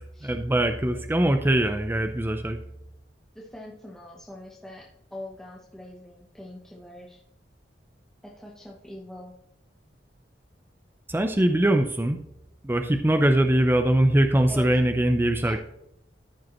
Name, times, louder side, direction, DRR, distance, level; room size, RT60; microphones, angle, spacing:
voice 1, 0.2-2.6 11.1-12.2 12.6-15.6, right 1 dB, 10° right, 6 dB, 0.5 m, -22 dB
voice 2, 3.3-7.2 8.2-9.3 14.5-14.7 15.4-15.6, left 1 dB, 5° left, -3 dB, 0.9 m, -42 dB
13.5 x 5.1 x 3.0 m, 0.80 s
head